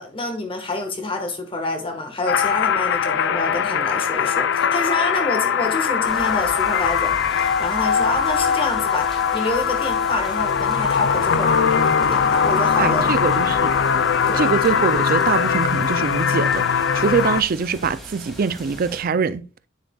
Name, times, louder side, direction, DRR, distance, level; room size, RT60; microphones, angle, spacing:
voice 1, 0.0-13.1 14.3-14.4, left 2 dB, 25° left, 1.5 m, -27 dB
sound 1, 2.3-17.4, left 7 dB, 60° left, 0.4 m, -21 dB
sound 2, 6.0-19.0, right 1 dB, ahead, 2.5 m, -39 dB
voice 2, 12.8-13.7 14.3-19.4, right 5 dB, 45° right, 0.4 m, -23 dB
9.6 x 7.3 x 2.3 m
head